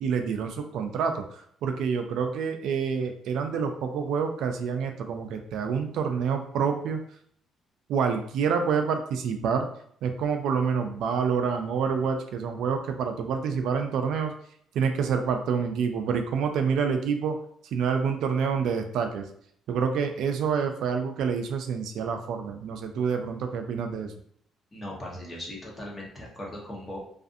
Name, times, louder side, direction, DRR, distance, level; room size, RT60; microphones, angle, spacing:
voice 1, 0.0-7.0 7.9-9.7 10.0-14.3 14.7-17.4 17.7-19.3 19.7-24.1, right 6 dB, 70° right, 5 dB, 0.3 m, -27 dB
voice 2, 24.7-27.0, left 1 dB, 20° left, -3 dB, 0.8 m, -38 dB
2.4 x 2.4 x 2.5 m, 0.64 s
cardioid pair, 140°, 0 cm